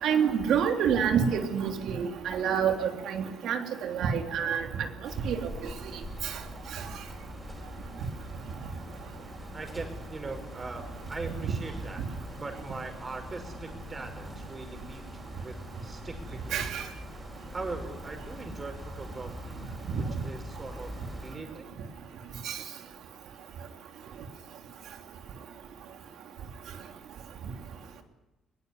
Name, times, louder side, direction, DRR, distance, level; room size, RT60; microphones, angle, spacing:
voice 1, 0.0-4.6 5.2-5.4 16.5-16.8 22.4-22.6, right 7 dB, 75° right, 5 dB, 3.2 m, -27 dB
sound 1, 5.0-21.4, equal, 5° right, 5.7 m, -43 dB
voice 2, 9.5-12.0 12.4-16.6 17.5-21.7, right 3 dB, 30° right, 5 dB, 5.7 m, -41 dB
20.5 x 19.0 x 9.9 m, 0.96 s
cardioid pair, 100°, 0 cm